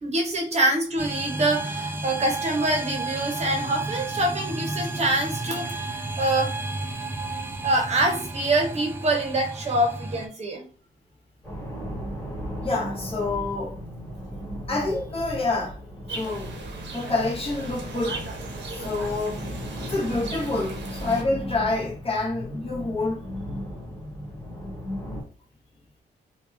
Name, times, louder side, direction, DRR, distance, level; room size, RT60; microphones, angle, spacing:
voice 1, 0.0-6.5 7.6-10.7, right 1 dB, 35° right, 0.9 m, -25 dB
sound 1, 1.0-10.3, right 2 dB, 10° right, 0.3 m, -32 dB
voice 2, 7.2-7.6 12.6-13.8 14.7-15.8 16.1-18.2 18.7-19.5 19.8-23.2, left 3 dB, 30° left, 0.9 m, -28 dB
sound 2, 11.4-25.2, equal, 10° left, 1.4 m, -36 dB
sound 3, 16.1-21.2, right 3 dB, 80° right, 0.8 m, -38 dB
2.9 x 2.3 x 3.3 m
wide cardioid pair, 155°, 19 cm